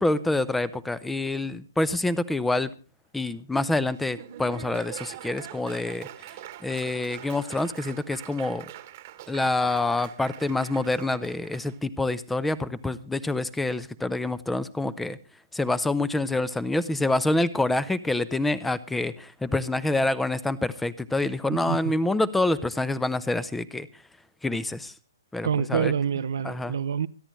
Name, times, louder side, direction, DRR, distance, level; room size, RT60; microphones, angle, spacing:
voice 1, 0.0-2.7 3.1-6.1 6.6-8.7 9.3-15.2 15.5-23.9 24.4-24.9 25.3-25.9 26.4-26.8, left 2 dB, 5° left, 0.6 m, -27 dB
Laughter / Applause, 3.9-11.8, right 12 dB, 40° right, 1.2 m, -43 dB
voice 2, 21.5-21.9 25.4-27.1, right 8 dB, 60° right, 0.6 m, -27 dB
27.0 x 10.0 x 3.2 m
figure-of-eight pair, 130°, 2 cm